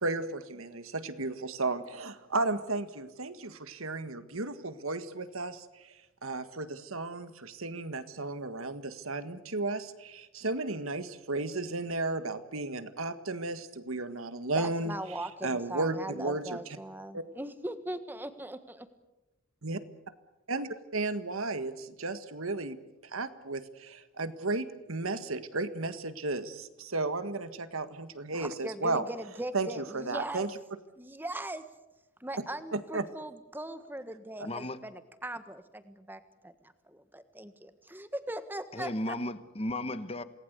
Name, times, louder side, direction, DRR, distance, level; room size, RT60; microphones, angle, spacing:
voice 1, 0.0-5.9 6.2-15.0 15.4-16.6 17.1-17.2 19.6-19.8 20.5-22.8 23.1-29.0 29.5-30.5 32.7-33.0, right 3 dB, 80° right, 11 dB, 1.7 m, -34 dB
voice 2, 14.5-18.9 28.3-30.5 31.0-31.6 32.2-39.1, right 1 dB, 10° right, 10 dB, 1.4 m, -40 dB
voice 3, 34.4-34.8 38.7-40.2, left 1 dB, 30° left, 12 dB, 1.2 m, -34 dB
27.5 x 19.0 x 8.2 m, 0.99 s
head